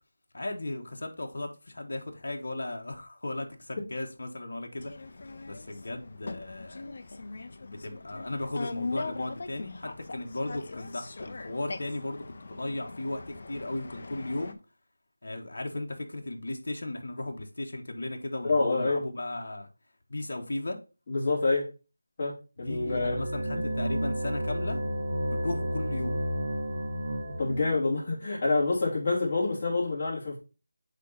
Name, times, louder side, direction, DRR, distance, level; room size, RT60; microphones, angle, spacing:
voice 1, 0.3-4.9 5.5-6.9 7.6-14.5 15.2-19.7 20.1-20.8 22.6-24.8 25.3-26.2, left 2 dB, 60° left, 1.2 m, -36 dB
sound 1, 4.8-14.5, left 3 dB, 45° left, 0.6 m, -40 dB
voice 2, 18.4-19.0 21.1-21.7 22.2-23.2 27.4-30.4, left 3 dB, 25° left, 2.7 m, -27 dB
sound 2, 22.6-27.7, equal, 35° right, 1.0 m, -31 dB
8.0 x 3.0 x 3.9 m
figure-of-eight pair, 175°, 0 cm